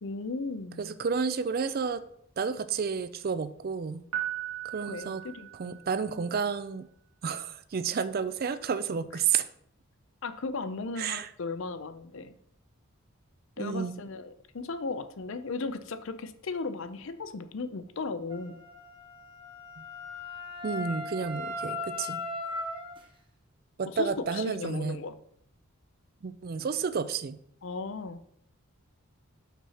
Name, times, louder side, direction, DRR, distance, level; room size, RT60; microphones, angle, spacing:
voice 1, 0.0-0.9 4.8-5.8 10.2-12.3 13.6-18.6 23.9-25.1 27.6-28.3, left 3 dB, 60° left, 11 dB, 0.5 m, -36 dB
voice 2, 0.8-2.0 2.4-4.0 4.6-5.2 5.6-6.9 7.2-9.5 11.0-11.3 13.6-14.0 19.8-19.9 20.6-22.2 23.8-25.0 26.2-27.4, right 6 dB, 40° right, 13 dB, 0.4 m, -31 dB
Piano, 4.1-6.2, right 11 dB, 75° right, 1.7 m, -37 dB
Wind instrument woodwind instrument, 18.3-23.0, left 2 dB, 20° right, 1.0 m, -38 dB
6.0 x 4.3 x 5.5 m, 0.69 s
head